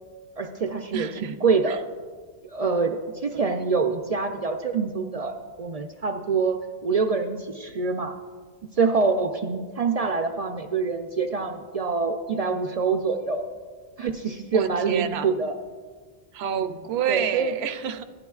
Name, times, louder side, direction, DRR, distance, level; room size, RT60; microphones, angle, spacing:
voice 1, 0.4-1.8 2.5-3.0 3.2-8.2 8.7-13.4 14.0-15.6 17.1-17.5, right 4 dB, 55° right, 4 dB, 0.4 m, -25 dB
voice 2, 0.9-1.4 1.6-1.8 3.3-3.4 14.5-15.3 16.3-18.0, right 9 dB, 70° right, 9 dB, 0.8 m, -29 dB
15.0 x 10.5 x 2.3 m, 1.5 s
omnidirectional pair, 1.1 m